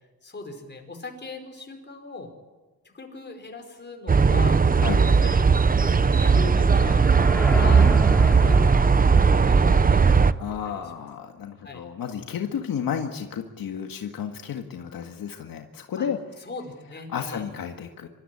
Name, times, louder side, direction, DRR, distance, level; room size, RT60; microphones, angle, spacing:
voice 1, 0.2-2.3 2.9-5.5 5.8-7.0 7.5-7.9 8.4-11.1 11.6-11.8 16.0-16.1 16.4-17.4, left 3 dB, 30° left, 4 dB, 5.1 m, -39 dB
sound 1, 4.1-10.3, right 5 dB, 25° right, 0.7 m, -18 dB
sound 2, 6.8-10.9, left 1 dB, 5° left, 3.5 m, -36 dB
voice 2, 10.4-16.2 17.1-18.1, left 8 dB, 85° left, 4 dB, 1.8 m, -32 dB
25.0 x 14.0 x 9.9 m, 1.2 s
cardioid pair, 90°, 34 cm